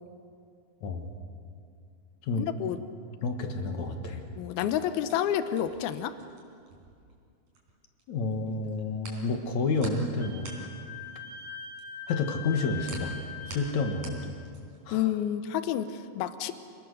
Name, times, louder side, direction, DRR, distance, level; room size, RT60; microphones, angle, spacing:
voice 1, 2.4-2.8 4.4-6.1 14.9-16.5, left 10 dB, 80° left, 11 dB, 2.8 m, -29 dB
voice 2, 3.2-4.2 8.1-10.5 12.1-13.1 13.5-14.3 14.9-15.0, left 3 dB, 60° left, 5 dB, 2.5 m, -30 dB
sound 1, 3.8-8.0 8.3-14.9, right 3 dB, 50° right, 4.9 m, -47 dB
Wind instrument woodwind instrument, 10.2-14.2, left 7 dB, 30° right, 3.3 m, -42 dB
28.0 x 19.5 x 6.6 m, 2.3 s
omnidirectional pair, 4.4 m